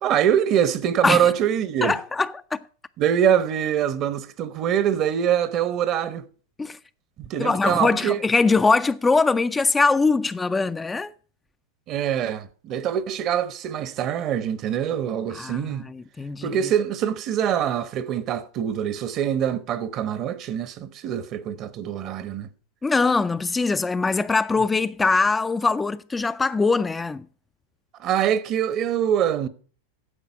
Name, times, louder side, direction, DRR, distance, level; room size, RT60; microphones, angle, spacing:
voice 1, 0.0-1.9 3.0-6.2 7.2-8.2 11.9-15.9 16.4-22.5 28.0-29.5, right 9 dB, 40° right, 0.9 m, -24 dB
voice 2, 1.8-2.6 6.6-6.8 7.4-11.1 15.3-16.6 22.8-27.2, left 4 dB, 15° left, 0.4 m, -22 dB
9.9 x 7.3 x 5.7 m
hypercardioid pair, 115°, 0 cm